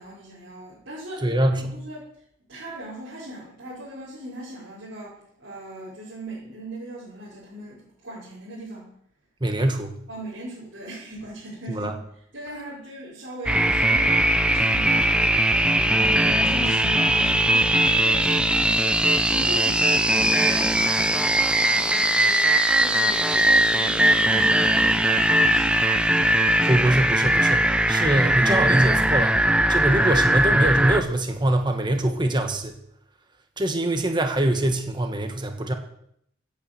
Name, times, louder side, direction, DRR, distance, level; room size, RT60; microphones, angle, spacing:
voice 1, 0.0-2.1 2.5-8.9 10.1-26.8, right 1 dB, 60° right, -9 dB, 5.6 m, -39 dB
voice 2, 1.2-1.8 9.4-9.9 11.7-11.9 26.7-29.4 29.7-32.8 33.6-35.7, right 1 dB, 25° right, 5 dB, 1.4 m, -23 dB
sound 1, 13.5-31.0, right 1 dB, 5° right, 0.8 m, -20 dB
16.5 x 8.8 x 7.0 m, 0.72 s
head